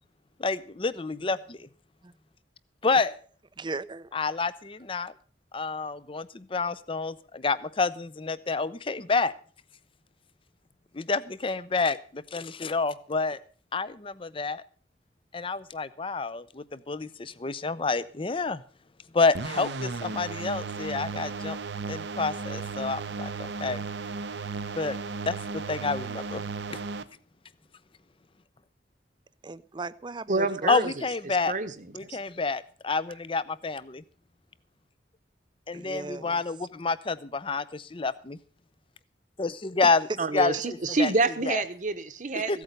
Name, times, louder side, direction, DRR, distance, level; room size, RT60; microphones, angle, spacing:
voice 1, 0.4-1.7 2.8-3.1 4.1-5.1 5.5-9.3 10.9-13.4 13.7-14.6 15.3-18.6 19.1-21.6 21.9-23.8 24.8-25.0 25.2-26.4 26.7-26.8 30.7-31.5 31.9-34.0 35.7-38.4 39.4-40.1 40.3-41.1 41.5-41.6 42.3-42.6, left 4 dB, 30° left, 0.6 m, -29 dB
voice 2, 3.6-4.1 29.4-30.7 35.7-36.4, right 3 dB, 25° right, 0.5 m, -37 dB
sound 1, 19.3-27.0, right 4 dB, 75° right, 0.9 m, -35 dB
voice 3, 30.3-32.2 40.2-42.6, right 3 dB, 45° right, 1.1 m, -28 dB
15.5 x 8.5 x 6.6 m
head